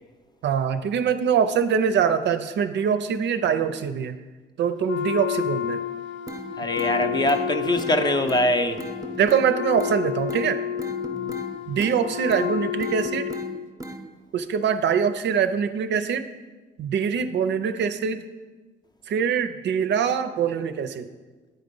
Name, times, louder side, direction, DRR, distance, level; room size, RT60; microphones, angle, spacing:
voice 1, 0.4-4.2 4.6-5.8 9.2-10.6 11.7-13.3 14.3-16.3 16.8-18.2 19.1-21.1, right 7 dB, 65° right, 0.5 m, -23 dB
Wind instrument woodwind instrument, 4.8-13.7, left 9 dB, 70° left, 0.4 m, -30 dB
sound 1, 6.3-6.4 6.8-7.4 7.8-7.9 8.3-8.4 8.8-9.4 9.8-10.0 10.3-10.4 10.8-11.5 11.8-12.0 12.3-12.5 12.8-13.5 13.8-14.0, right 1 dB, 15° right, 0.7 m, -36 dB
voice 2, 6.6-8.8 11.1-11.4, left 1 dB, 20° left, 0.6 m, -23 dB
8.8 x 3.9 x 5.3 m
cardioid pair, 90°, 20 cm